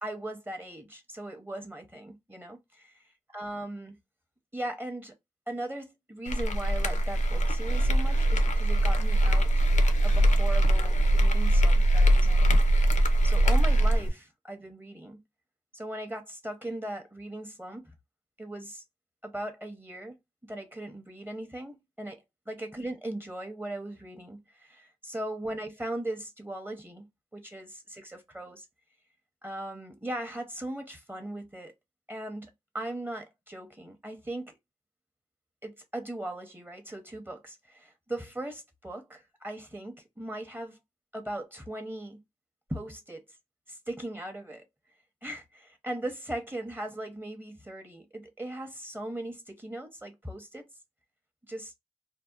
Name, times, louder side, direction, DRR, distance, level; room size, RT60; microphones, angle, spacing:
voice 1, 0.0-3.0 3.3-4.0 4.5-5.1 5.5-9.6 10.0-12.5 13.2-15.2 15.7-17.9 18.4-18.8 19.2-20.2 20.4-27.1 27.3-28.7 29.4-31.7 32.1-34.6 35.6-40.8 41.1-42.2 42.7-43.2 43.7-44.6 45.2-50.7 51.5-51.7, right 1 dB, 15° right, 0.6 m, -39 dB
sound 1, 6.3-14.1, right 1 dB, 65° left, 0.4 m, -22 dB
2.7 x 2.0 x 2.3 m
cardioid pair, 50°, 13 cm